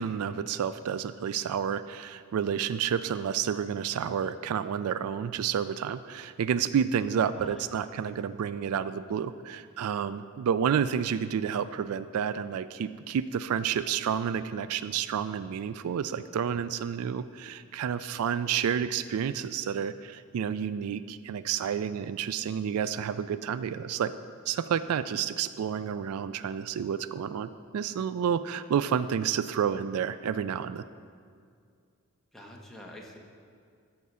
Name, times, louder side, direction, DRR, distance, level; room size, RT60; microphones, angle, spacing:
voice 1, 0.0-24.1 24.5-30.8, right 8 dB, 80° right, 14 dB, 0.3 m, -30 dB
voice 2, 7.3-8.1 32.3-33.2, left 1 dB, ahead, -2 dB, 1.2 m, -48 dB
13.5 x 4.7 x 5.5 m, 2.2 s
head